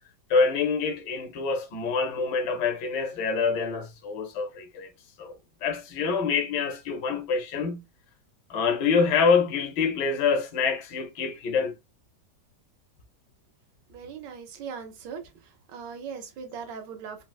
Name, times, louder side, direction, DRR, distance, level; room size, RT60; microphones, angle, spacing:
voice 1, 0.3-4.9 5.2-7.8 8.5-11.7, left 5 dB, 85° left, 1.4 m, -26 dB
voice 2, 13.9-15.2 15.7-17.3, right 6 dB, 85° right, 1.4 m, -39 dB
4.3 x 2.0 x 2.2 m
omnidirectional pair, 1.9 m